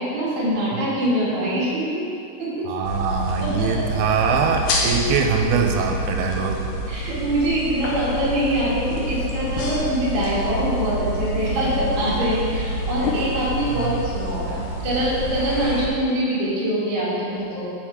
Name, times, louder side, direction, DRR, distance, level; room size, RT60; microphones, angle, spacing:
voice 1, 0.0-2.0 2.4-2.7 3.4-3.8 4.8-4.9 6.9-17.6, right 1 dB, 55° right, -9 dB, 2.6 m, -24 dB
voice 2, 2.7-6.6 13.8-13.9, right 6 dB, 90° right, 2 dB, 2.5 m, -22 dB
sound 1, 2.8-15.9, equal, 90° left, 1.7 m, -27 dB
7.1 x 4.6 x 3.5 m, 2.7 s
omnidirectional pair, 4.4 m